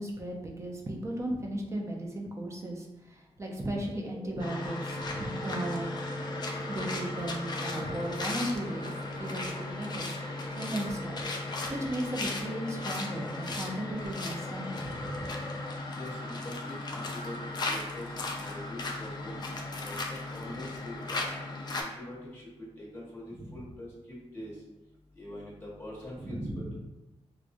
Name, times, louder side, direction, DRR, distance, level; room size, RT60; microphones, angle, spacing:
voice 1, 0.0-5.8 6.7-8.9 9.2-15.3 23.3-23.6 26.2-26.7, right 1 dB, 25° right, 0 dB, 0.7 m, -36 dB
sound 1, 3.9-15.8, right 1 dB, 45° right, 1.0 m, -44 dB
sound 2, 4.4-21.8, left 2 dB, 40° left, 0.5 m, -36 dB
voice 2, 15.9-17.4 17.7-18.1 18.3-20.0 20.3-21.3 21.7-22.4 22.8-24.5 25.1-26.7, left 1 dB, 20° left, -6 dB, 1.4 m, -44 dB
4.8 x 2.4 x 2.6 m, 1.0 s
wide cardioid pair, 125°, 11 cm